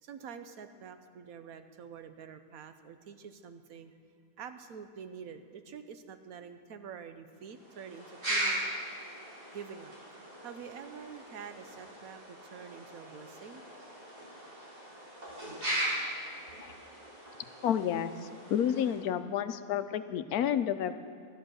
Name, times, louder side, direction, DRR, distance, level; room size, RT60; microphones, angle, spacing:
voice 1, 0.0-3.9 4.4-8.6 9.5-9.9 10.4-13.6, right 7 dB, 70° right, 9 dB, 1.1 m, -47 dB
sound 1, 7.4-19.0, right 1 dB, 85° right, 4.9 m, -39 dB
voice 2, 17.6-20.9, left 9 dB, 75° left, 11 dB, 1.1 m, -30 dB
12.0 x 11.0 x 6.3 m, 2.2 s
omnidirectional pair, 1.6 m